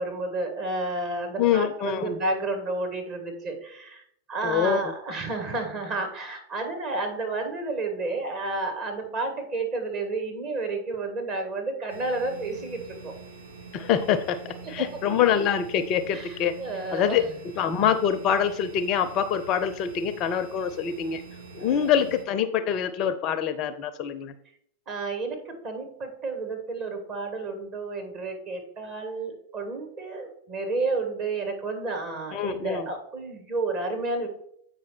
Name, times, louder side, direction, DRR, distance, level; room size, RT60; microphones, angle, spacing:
voice 1, 0.0-13.1 14.6-14.7 16.1-17.2 21.6-21.8 24.9-34.3, right 3 dB, 35° right, 4 dB, 2.2 m, -31 dB
voice 2, 1.4-2.2 4.4-4.8 13.7-16.6 16.9-17.2 17.6-21.2 21.5-24.3 32.3-32.9, left 8 dB, 35° left, 12 dB, 0.6 m, -25 dB
sound 1, 11.9-22.2, right 4 dB, 80° right, 1.5 m, -45 dB
8.4 x 5.2 x 4.4 m, 0.68 s
figure-of-eight pair, 90°, 0 cm